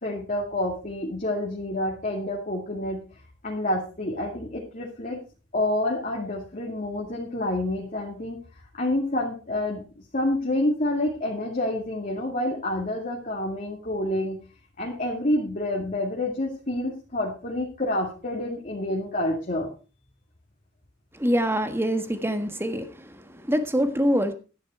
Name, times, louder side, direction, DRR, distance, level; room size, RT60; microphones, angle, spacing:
voice 1, 0.0-3.0 3.4-5.2 5.5-8.4 8.8-9.8 10.1-14.4 14.8-19.7, left 1 dB, 40° left, -2 dB, 2.4 m, -28 dB
voice 2, 21.2-22.9 23.5-24.3, equal, 10° right, 9 dB, 1.4 m, -24 dB
12.0 x 10.5 x 4.6 m, 0.35 s
head